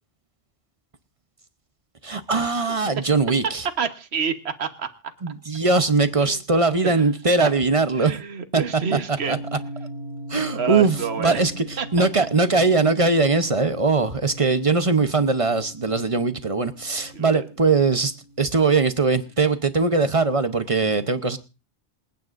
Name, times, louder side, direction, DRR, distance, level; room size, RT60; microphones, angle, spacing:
voice 1, 2.0-3.7 5.2-8.1 8.5-8.6 9.3-9.4 10.3-21.4, right 3 dB, 35° right, 0.8 m, -21 dB
voice 2, 3.8-4.9 6.2-6.4 6.8-7.0 7.4-7.5 8.0-9.4 10.5-11.4 11.8-12.1 17.1-17.4, right 6 dB, 70° right, 1.4 m, -28 dB
sound 1, 9.2-19.4, equal, 55° right, 2.2 m, -40 dB
27.5 x 9.4 x 2.6 m
omnidirectional pair, 1.1 m